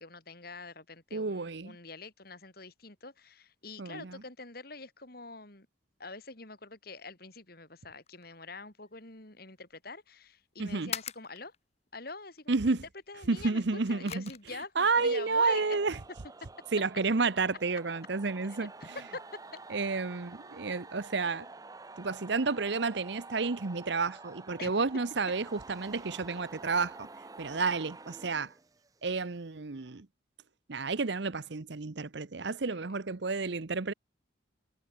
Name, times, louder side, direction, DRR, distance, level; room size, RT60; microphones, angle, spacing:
voice 1, 0.0-5.7 6.0-11.5 11.9-12.8 13.1-15.8 18.4-19.6 21.2-21.5 24.6-24.7 32.7-32.8, left 3 dB, 50° left, 3.1 m, -45 dB
voice 2, 1.1-1.8 3.8-4.2 10.6-10.9 12.5-12.8 13.3-14.3 14.8-16.0 16.7-18.7 19.7-21.5 22.0-27.1 27.4-28.5 29.0-30.1 30.7-33.9, right 4 dB, 60° right, 0.8 m, -31 dB
sound 1, 7.9-19.7, left 8 dB, 35° left, 2.7 m, -50 dB
sound 2, 14.9-29.0, right 3 dB, 20° right, 0.6 m, -49 dB
head